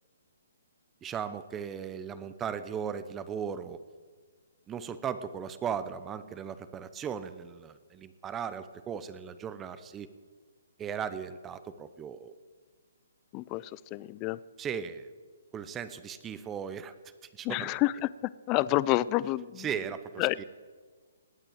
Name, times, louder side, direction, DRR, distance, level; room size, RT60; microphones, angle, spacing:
voice 1, 1.0-3.8 4.7-10.1 10.8-12.3 14.6-15.1 15.5-17.0 17.3-17.7 19.6-20.4, right 7 dB, 15° right, 12 dB, 0.8 m, -37 dB
voice 2, 13.3-14.4 17.4-18.1 18.5-19.7 20.2-20.4, left 17 dB, 25° left, 19 dB, 0.4 m, -28 dB
19.0 x 8.9 x 7.9 m, 1.5 s
hypercardioid pair, 145°, 0 cm